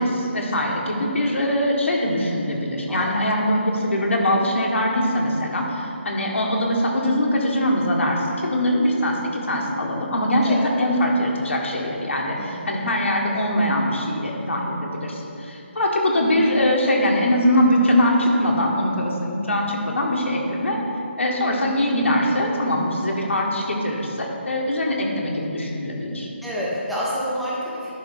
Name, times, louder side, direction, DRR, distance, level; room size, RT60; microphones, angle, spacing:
voice 1, 0.0-20.8 21.2-26.3, left 1 dB, 80° left, -1 dB, 1.7 m, -22 dB
voice 2, 12.4-12.8 26.4-27.9, equal, ahead, -9 dB, 0.6 m, -28 dB
10.5 x 4.0 x 5.8 m, 2.7 s
hypercardioid pair, 175°, 7 cm